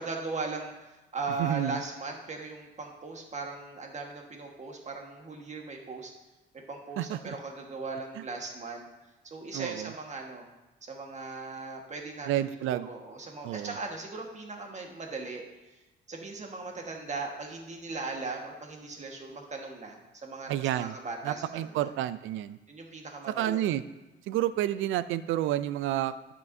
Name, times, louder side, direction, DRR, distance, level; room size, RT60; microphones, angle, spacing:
voice 1, 0.0-6.1 6.5-8.8 9.2-10.5 10.8-15.8 16.1-21.9 22.7-23.6, right 3 dB, 35° right, 1 dB, 1.5 m, -38 dB
voice 2, 1.4-1.8 7.0-7.3 8.2-8.3 9.5-9.9 12.3-12.9 13.4-13.8 20.5-20.9 21.2-22.6 23.4-23.8 24.3-26.3, right 13 dB, 85° right, 14 dB, 0.4 m, -30 dB
12.5 x 5.8 x 2.7 m, 1.0 s
cardioid pair, 90°, 20 cm